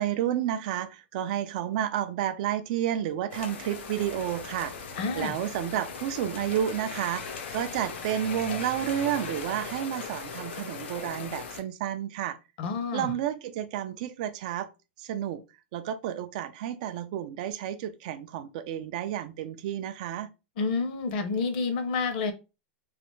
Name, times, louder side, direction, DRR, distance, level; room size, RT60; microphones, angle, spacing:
voice 1, 0.0-4.8 5.2-12.4 12.9-14.7 15.0-15.4 15.7-20.3, right 11 dB, 45° right, 0.3 m, -31 dB
sound 1, 3.3-11.6, left 5 dB, 85° left, 0.8 m, -39 dB
voice 2, 5.0-5.4 12.6-13.1 20.6-22.3, left 4 dB, 50° left, 0.7 m, -29 dB
3.2 x 2.5 x 3.0 m
supercardioid pair, 170°, 6 cm